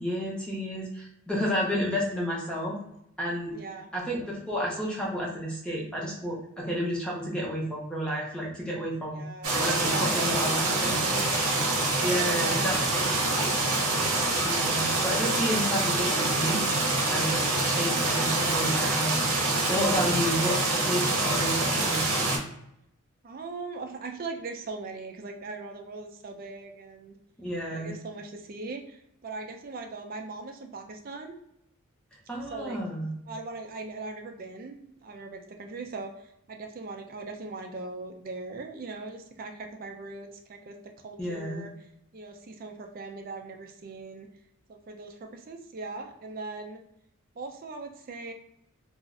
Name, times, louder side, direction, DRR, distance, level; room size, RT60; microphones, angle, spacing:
voice 1, 0.0-2.8 3.2-3.5 3.9-9.2 9.6-11.2 12.0-12.7 14.4-16.6 17.1-17.4 17.7-19.1 19.4-22.1 27.4-27.9 32.3-33.1 41.2-41.6, equal, 5° left, -4 dB, 0.6 m, -31 dB
voice 2, 3.5-3.9 9.1-10.6 10.9-11.4 12.0-12.8 13.8-14.1 15.5-15.6 17.2-17.5 23.2-27.1 27.7-31.4 32.5-32.8 33.3-40.8 41.0-41.9 42.1-44.3 44.7-46.8 47.4-48.3, right 3 dB, 40° right, 4 dB, 0.4 m, -40 dB
sound 1, 9.4-22.4, right 2 dB, 85° right, 0.7 m, -26 dB
2.4 x 2.0 x 3.7 m, 0.78 s
head